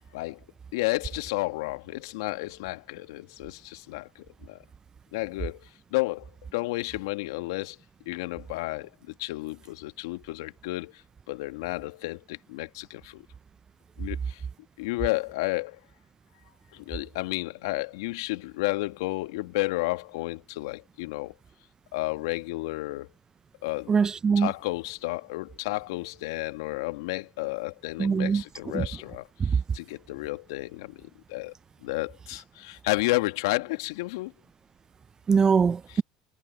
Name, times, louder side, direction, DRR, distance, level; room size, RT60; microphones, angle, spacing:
voice 1, 0.1-0.5 0.7-4.6 5.1-7.8 8.1-8.9 9.2-13.2 14.0-14.4 14.8-15.8 16.7-21.3 21.9-23.1 23.6-23.9 24.4-31.5 31.8-34.3 35.9-36.0, left 21 dB, 75° left, 1.8 m, -32 dB
voice 2, 23.9-24.5 28.0-28.4 28.7-28.9 29.4-29.6 35.3-36.0, right 5 dB, 30° right, 0.6 m, -22 dB
hypercardioid pair, 75°, 2 cm